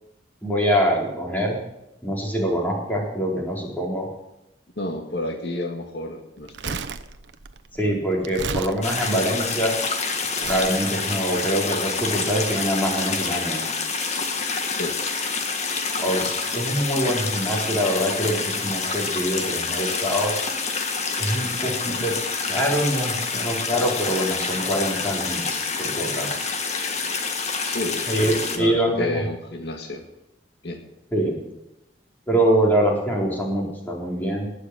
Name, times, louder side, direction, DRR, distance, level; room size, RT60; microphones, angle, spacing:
voice 1, 0.4-1.6 2.0-4.1 7.8-9.7 10.4-13.6 16.0-20.3 21.2-22.1 22.5-26.3 28.1-29.2 31.1-31.4 32.3-34.5, equal, 10° left, -3 dB, 4.3 m, -24 dB
voice 2, 4.8-6.8 14.7-15.0 27.6-28.0 28.5-30.0 30.6-30.8, left 2 dB, 65° left, 3 dB, 2.0 m, -30 dB
Crumpling crinkling, 6.4-9.7 10.4-10.7 11.5-11.6, right 4 dB, 90° right, 0.9 m, -33 dB
sound 1, 8.8-28.6, left 4 dB, 40° left, 1.8 m, -27 dB
19.5 x 6.7 x 10.0 m, 0.90 s
head